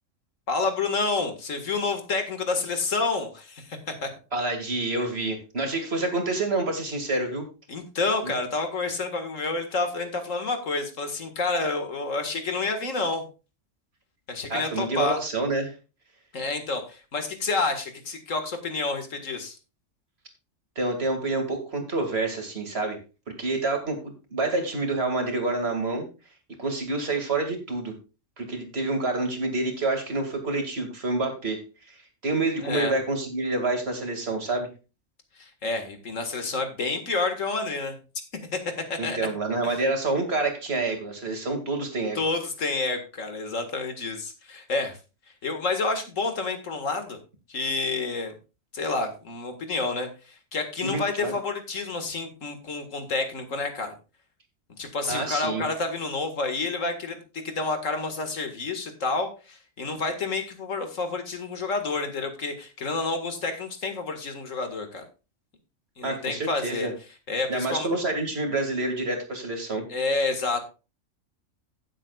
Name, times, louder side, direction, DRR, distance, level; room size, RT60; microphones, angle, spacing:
voice 1, 0.5-4.1 7.7-13.2 14.3-15.2 16.3-19.6 32.6-32.9 35.4-38.0 38.5-38.6 38.9-39.2 39.6-39.8 42.2-45.0 45.4-47.2 47.5-48.3 48.7-53.9 54.8-65.1 66.0-66.9 67.3-67.9 69.9-70.6, left 3 dB, 80° left, 7 dB, 2.2 m, -29 dB
voice 2, 4.3-7.5 8.2-8.3 14.5-15.7 20.8-23.0 23.4-26.1 26.6-27.9 28.4-31.6 31.9-34.7 39.0-42.2 50.8-51.3 55.1-55.6 66.0-66.9 67.5-69.8, right 2 dB, 50° right, 5 dB, 2.6 m, -28 dB
16.5 x 7.7 x 2.4 m, 0.31 s
omnidirectional pair, 1.3 m